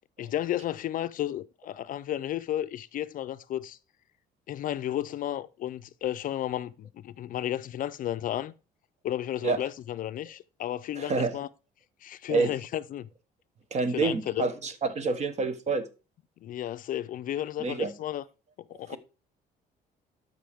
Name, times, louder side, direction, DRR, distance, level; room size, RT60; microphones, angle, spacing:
voice 1, 0.2-3.8 4.5-8.5 9.0-11.5 12.0-13.1 13.9-14.5 16.4-18.2 18.8-19.0, left 12 dB, 55° left, 0.4 m, -33 dB
voice 2, 11.0-11.3 12.3-12.5 13.7-15.9 17.6-17.9 18.9-19.0, right 4 dB, 40° right, 1.2 m, -28 dB
12.5 x 5.4 x 3.5 m
cardioid pair, 110°, 17 cm